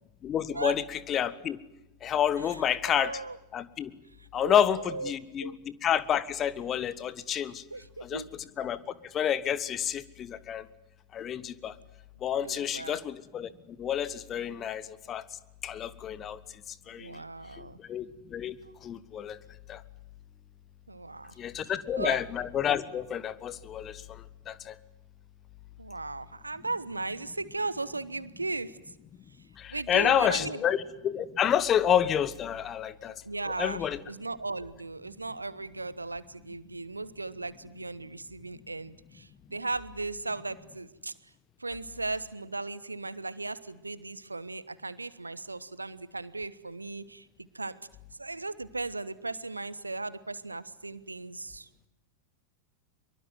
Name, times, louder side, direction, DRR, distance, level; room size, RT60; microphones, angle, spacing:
voice 1, 0.2-1.6 2.0-3.2 3.5-3.9 4.3-7.6 8.0-8.2 8.6-8.8 9.1-10.7 11.1-11.7 12.2-13.5 13.8-15.2 15.6-16.4 16.9-17.2 17.6-18.6 18.8-19.4 19.7-19.8 21.4-24.7 29.6-33.1 33.6-34.0, left 9 dB, 30° left, 17 dB, 1.4 m, -29 dB
voice 2, 2.9-3.4 4.2-5.1 5.4-5.5 7.7-8.3 12.4-13.0 17.0-17.8 20.9-21.3 22.0-22.2 25.8-28.8 29.7-30.6 33.2-41.1 41.6-47.8 48.2-51.9, right 3 dB, 80° right, 17 dB, 1.2 m, -37 dB
24.0 x 23.5 x 9.3 m, 0.89 s
figure-of-eight pair, 90°, 0 cm